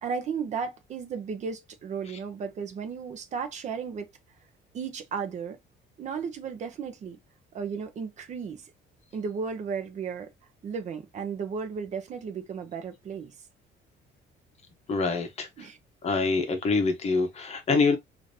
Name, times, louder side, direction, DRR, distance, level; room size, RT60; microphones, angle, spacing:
voice 1, 0.0-4.1 4.7-5.6 6.0-7.2 7.5-8.7 9.1-10.3 10.6-13.3 15.6-15.8, right 6 dB, 35° right, 0.7 m, -34 dB
voice 2, 14.9-15.7 16.0-18.0, left 4 dB, 30° left, 0.8 m, -25 dB
4.9 x 2.6 x 2.6 m
cardioid pair, 175°, 20 cm